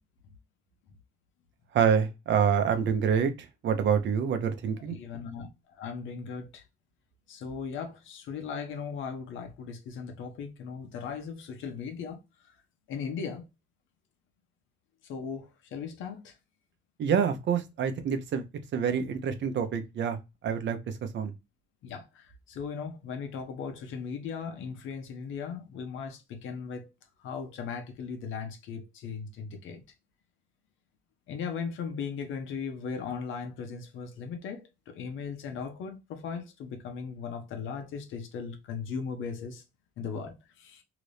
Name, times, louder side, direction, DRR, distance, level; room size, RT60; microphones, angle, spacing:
voice 1, 1.7-3.3 3.6-5.0 17.0-18.4 18.7-20.2 20.4-20.8 21.1-21.3, right 7 dB, 65° right, 0.8 m, -26 dB
voice 2, 4.9-6.6 7.3-12.2 12.9-13.4 15.1-16.3 21.8-26.9 27.2-29.8 31.3-39.6 40.0-40.8, left 6 dB, 85° left, 0.9 m, -38 dB
3.0 x 2.6 x 3.2 m
cardioid pair, 90°, 20 cm